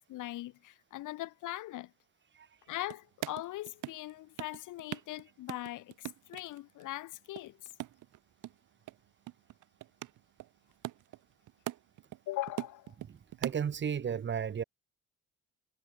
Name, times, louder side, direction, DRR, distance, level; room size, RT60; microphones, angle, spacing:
voice 1, 0.1-1.9 2.7-7.7 12.3-12.9, left 16 dB, 90° left, 3.0 m, -41 dB
sound 1, 2.7-4.1 4.4-5.2 5.5-6.8 7.1-8.6 8.9-9.0 9.3-12.2 12.5-13.8, right 15 dB, 85° right, 5.2 m, -41 dB
voice 2, 13.4-14.6, right 7 dB, 40° right, 1.0 m, -33 dB
cardioid pair, 90°, 30 cm